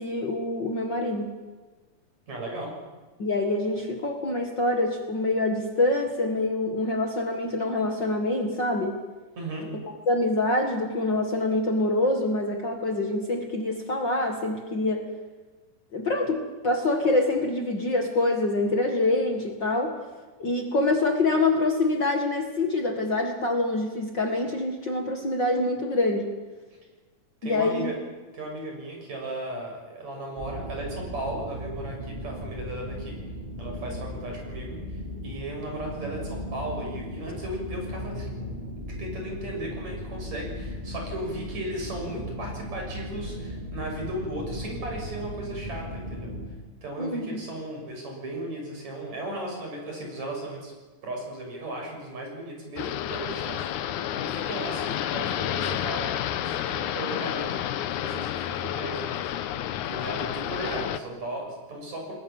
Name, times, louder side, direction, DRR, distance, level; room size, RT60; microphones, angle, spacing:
voice 1, 0.0-1.4 3.2-9.0 9.8-15.1 15.9-19.9 20.4-26.3 27.4-27.9 47.0-47.4, left 2 dB, 40° left, 3 dB, 2.3 m, -25 dB
voice 2, 2.3-2.7 9.4-9.7 27.4-27.9 28.3-33.2 33.6-38.4 39.0-46.3 46.8-50.7 51.0-62.1, right 1 dB, 60° right, 0 dB, 8.2 m, -36 dB
sound 1, 30.4-46.5, equal, 15° right, 4.0 m, -37 dB
sound 2, 52.8-61.0, left 11 dB, 80° left, 2.4 m, -30 dB
29.5 x 20.5 x 7.3 m, 1.3 s
omnidirectional pair, 3.5 m